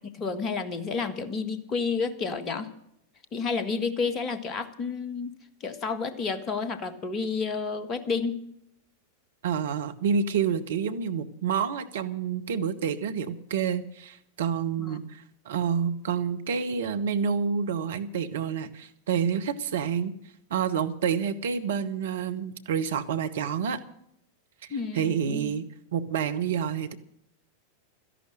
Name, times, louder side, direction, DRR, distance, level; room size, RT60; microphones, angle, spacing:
voice 1, 0.1-2.7 3.3-8.4 14.8-15.0 24.7-25.5, left 4 dB, 30° left, 11 dB, 1.5 m, -30 dB
voice 2, 9.4-20.1 20.5-23.8 24.9-26.9, right 7 dB, 60° right, 9 dB, 1.0 m, -28 dB
13.5 x 11.0 x 7.5 m, 0.74 s
figure-of-eight pair, 90°, 0 cm